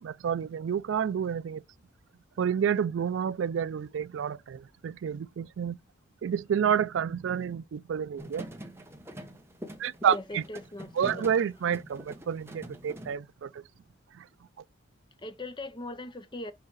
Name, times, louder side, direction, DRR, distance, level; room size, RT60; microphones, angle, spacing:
voice 1, 0.0-1.6 2.4-5.8 6.2-8.5 9.8-10.4 11.0-13.6 14.2-14.3, right 8 dB, 70° right, 0.3 m, -29 dB
sound 1, 8.2-13.2, equal, 10° right, 0.8 m, -44 dB
voice 2, 10.1-11.8 15.2-16.5, left 2 dB, 25° left, 0.5 m, -40 dB
4.8 x 4.8 x 4.6 m
head